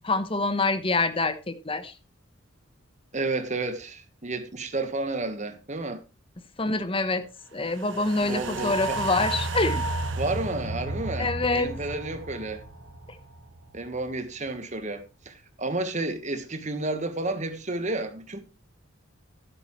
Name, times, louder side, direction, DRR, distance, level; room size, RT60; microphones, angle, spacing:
voice 1, 0.0-1.9 6.6-7.2 7.5-9.8 11.2-11.7, left 3 dB, 25° left, 1.1 m, -26 dB
voice 2, 3.1-6.0 8.2-9.0 10.2-12.6 13.7-18.4, right 2 dB, 35° right, 1.4 m, -31 dB
sound 1, 7.7-14.1 14.5-14.6, right 2 dB, 60° right, 1.5 m, -33 dB
12.5 x 10.5 x 3.2 m
head